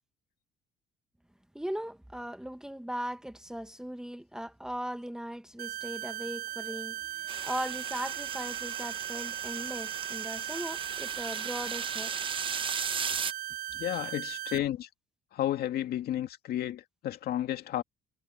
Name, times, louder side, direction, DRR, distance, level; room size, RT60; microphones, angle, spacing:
voice 1, 1.5-12.1 14.0-14.1, equal, 5° right, 1.4 m, -39 dB
sound 1, 5.6-14.6, right 12 dB, 65° right, 0.5 m, -38 dB
viaduct waterfall高架桥瀑布, 7.3-13.3, right 6 dB, 30° right, 0.8 m, -37 dB
voice 2, 13.8-14.9 15.3-17.8, left 12 dB, 65° left, 2.2 m, -32 dB
cardioid pair, 110°, 17 cm